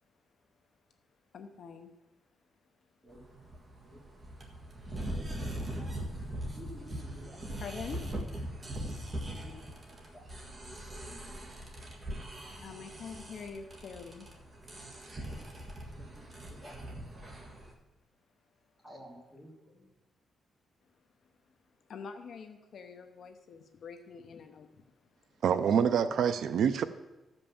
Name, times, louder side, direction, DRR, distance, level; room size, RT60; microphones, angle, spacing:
voice 1, 1.3-1.9 7.6-8.0 8.5-8.8 9.1-9.2 12.6-14.3 21.9-24.7, left 5 dB, 50° left, 0.8 m, -45 dB
voice 2, 3.0-3.4 3.8-4.0 6.5-7.4 9.3-9.6 10.1-10.2 15.2-15.6 16.0-16.9 18.8-19.9 26.0-26.2, equal, 5° right, 3.1 m, -51 dB
sound 1, 3.1-17.7, right 1 dB, 25° right, 1.6 m, -41 dB
voice 3, 25.4-26.8, right 7 dB, 60° right, 0.4 m, -26 dB
14.0 x 5.4 x 7.0 m
wide cardioid pair, 170°, 0 cm